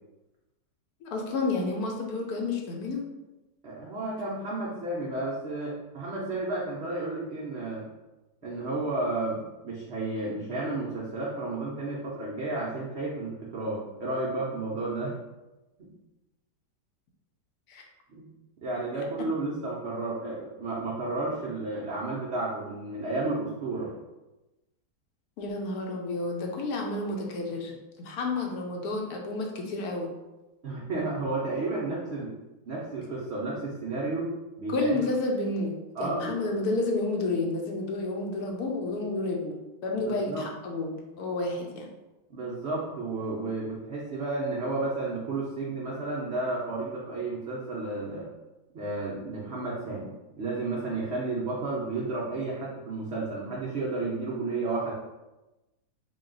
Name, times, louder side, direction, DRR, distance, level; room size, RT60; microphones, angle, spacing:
voice 1, 1.0-3.0 17.7-17.8 25.4-27.7 28.0-30.1 34.7-35.7 36.0-39.6 39.8-41.9, left 2 dB, 70° left, 1 dB, 1.0 m, -30 dB
voice 2, 3.6-7.9 8.4-15.1 15.8-15.9 18.1-18.3 18.6-23.9 30.6-32.3 32.7-34.3 34.6-34.9 35.9-36.4 40.0-40.5 42.3-48.3 48.7-50.1 50.4-54.9, right 2 dB, 75° right, -5 dB, 0.6 m, -32 dB
3.9 x 2.3 x 3.8 m, 1.0 s
omnidirectional pair, 1.9 m